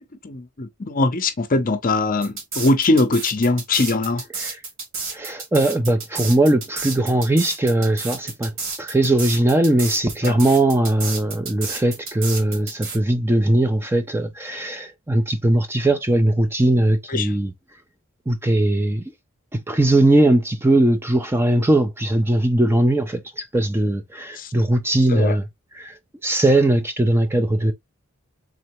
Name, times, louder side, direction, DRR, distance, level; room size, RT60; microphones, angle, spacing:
voice 1, 0.2-4.2 10.2-10.4 17.1-17.3 24.4-24.5 25.1-25.4, left 2 dB, 40° left, 0.6 m, -21 dB
sound 1, 2.2-13.0, right 4 dB, 60° right, 2.1 m, -31 dB
voice 2, 5.1-8.5 8.8-17.5 18.3-19.0 19.5-25.4 25.8-25.9 26.2-27.7, right 1 dB, 10° right, 0.4 m, -19 dB
3.7 x 3.2 x 3.0 m
head